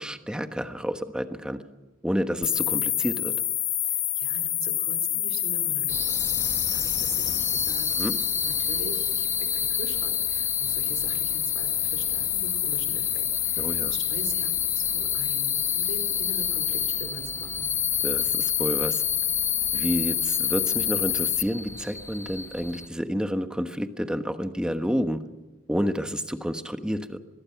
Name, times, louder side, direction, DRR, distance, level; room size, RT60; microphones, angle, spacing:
voice 1, 0.0-1.6 2.0-3.3 8.0-8.1 13.6-13.9 18.0-19.0 19.7-25.2 25.7-27.2, equal, 5° right, 7 dB, 1.3 m, -29 dB
sound 1, 2.4-21.4, left 11 dB, 30° left, 0.8 m, -27 dB
voice 2, 3.9-7.9 8.4-17.7, right 3 dB, 90° right, 6 dB, 4.6 m, -42 dB
sound 2, 5.9-22.9, left 2 dB, 15° left, 1.6 m, -37 dB
24.0 x 21.0 x 5.9 m, 1.2 s
head